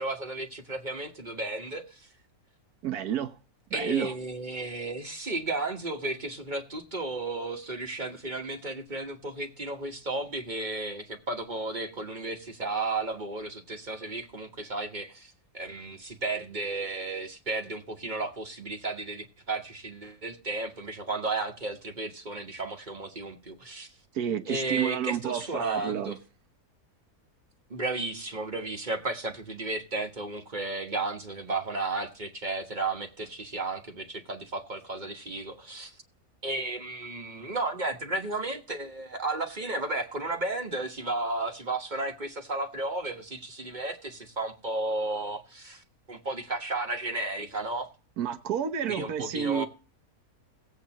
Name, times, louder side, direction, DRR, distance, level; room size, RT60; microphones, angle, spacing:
voice 1, 0.0-2.1 3.7-23.9 24.5-26.2 27.7-36.0 36.4-47.9 48.9-49.7, right 2 dB, 30° right, 1.4 m, -33 dB
voice 2, 2.8-3.4 3.7-4.1 24.1-26.2 48.2-49.7, right 9 dB, 80° right, 1.5 m, -30 dB
18.0 x 8.1 x 3.0 m
omnidirectional pair, 1.6 m